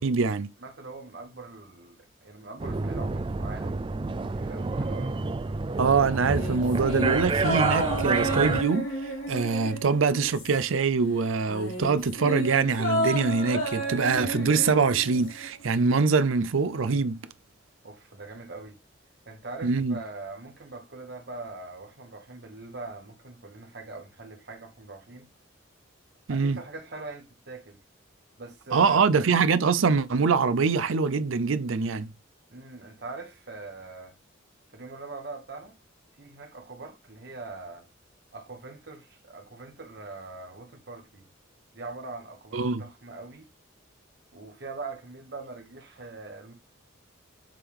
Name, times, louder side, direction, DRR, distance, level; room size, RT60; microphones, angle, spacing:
voice 1, 0.0-0.5 5.8-8.9 9.3-17.2 19.6-20.0 26.3-26.6 28.7-32.1 42.5-42.8, right 5 dB, 85° right, 0.5 m, -24 dB
voice 2, 0.6-5.2 17.8-18.8 19.2-25.3 26.3-27.8 28.4-29.1 32.5-34.1 34.7-35.8 36.2-37.8 38.3-41.3 41.7-43.5 44.3-46.5, right 3 dB, 55° right, 1.4 m, -42 dB
sound 1, 2.6-8.6, right 3 dB, 25° right, 0.3 m, -29 dB
sound 2, 6.1-10.9 11.2-15.5 15.8-15.9, right 1 dB, 85° left, 3.5 m, -32 dB
7.4 x 3.6 x 3.6 m
head